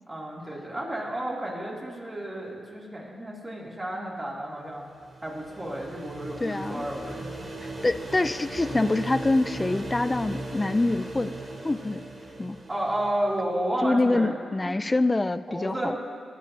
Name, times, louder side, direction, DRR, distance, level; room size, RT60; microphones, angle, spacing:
voice 1, 0.1-4.9 5.2-7.3 12.7-14.3 14.6-14.8 15.5-15.9, right 1 dB, 25° right, -4 dB, 2.6 m, -32 dB
sound 1, 4.6-13.4, right 2 dB, 55° right, 1.7 m, -38 dB
voice 2, 6.4-6.9 7.8-11.3 11.6-12.0 12.4-12.6 13.8-15.9, left 2 dB, 25° left, 14 dB, 0.3 m, -25 dB
18.5 x 7.0 x 2.9 m, 2.2 s
cardioid pair, 60°, 0 cm